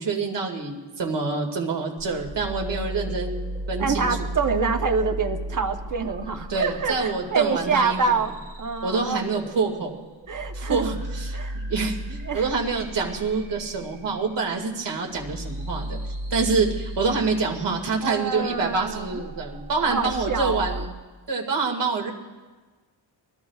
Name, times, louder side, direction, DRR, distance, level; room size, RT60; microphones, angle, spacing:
voice 1, 0.0-4.2 6.5-8.2 8.8-10.0 10.5-20.9 21.3-22.1, right 4 dB, 65° right, 1 dB, 2.3 m, -26 dB
sound 1, 2.0-20.9, right 1 dB, 20° right, 2.1 m, -35 dB
voice 2, 3.8-8.3 8.6-9.2 10.3-10.9 11.3-11.6 12.3-12.5 18.0-19.2 19.8-20.8, right 5 dB, 40° right, 6 dB, 1.0 m, -26 dB
26.0 x 21.5 x 2.4 m, 1.3 s
wide cardioid pair, 145°, 45 cm